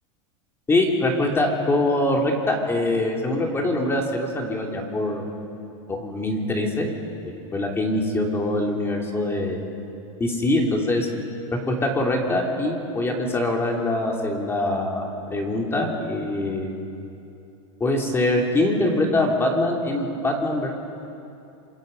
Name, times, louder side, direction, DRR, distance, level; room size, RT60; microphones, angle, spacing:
voice 1, 0.7-5.3 5.9-6.9 7.2-9.6 10.2-11.1 11.7-16.7 17.8-20.7, left 1 dB, 15° left, 1 dB, 3.0 m, -23 dB
27.0 x 23.0 x 5.4 m, 2.7 s
supercardioid pair, 140°, 17 cm